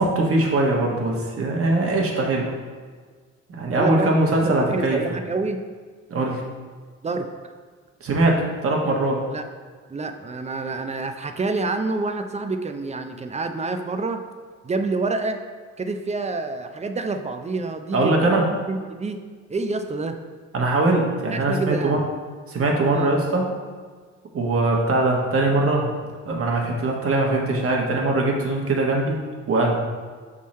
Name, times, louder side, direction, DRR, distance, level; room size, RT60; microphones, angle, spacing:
voice 1, 0.0-2.5 3.5-5.2 6.1-6.4 8.0-9.2 17.9-18.4 20.5-22.0 22.5-23.5 24.3-25.9 26.2-29.2 29.5-29.8, right 2 dB, 50° right, -1 dB, 1.3 m, -21 dB
voice 2, 3.7-5.6 7.0-7.3 9.3-9.5 9.9-14.2 14.6-15.4 15.8-19.2 19.5-20.2 21.3-22.0 22.9-23.1, right 3 dB, 25° right, 7 dB, 0.5 m, -28 dB
6.1 x 3.7 x 4.2 m, 1.5 s
cardioid pair, 90°, 30 cm